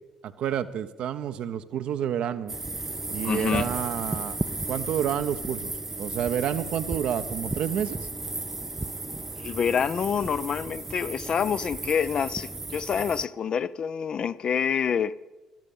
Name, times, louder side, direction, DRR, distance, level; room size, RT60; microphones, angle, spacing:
voice 1, 0.2-2.5 3.1-4.4 4.7-5.7 6.0-8.0, right 9 dB, 55° right, 0.8 m, -29 dB
sound 1, 2.5-13.3, right 2 dB, 15° right, 0.5 m, -34 dB
voice 2, 3.2-3.7 9.4-15.2, left 7 dB, 45° left, 0.5 m, -27 dB
18.0 x 13.0 x 5.5 m
figure-of-eight pair, 45°, 2 cm